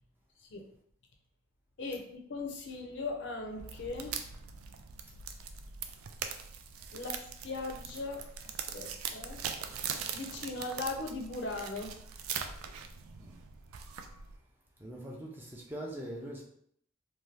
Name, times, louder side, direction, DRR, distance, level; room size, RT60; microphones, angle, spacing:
voice 1, 1.8-4.3 6.9-7.2 7.4-8.2 8.7-9.4 10.1-12.0, left 3 dB, 60° left, 1 dB, 0.5 m, -38 dB
sound 1, 3.6-14.4, right 7 dB, 90° right, 0.3 m, -41 dB
voice 2, 14.8-16.4, right 1 dB, 10° right, -2 dB, 0.4 m, -42 dB
2.7 x 2.2 x 3.1 m, 0.66 s
head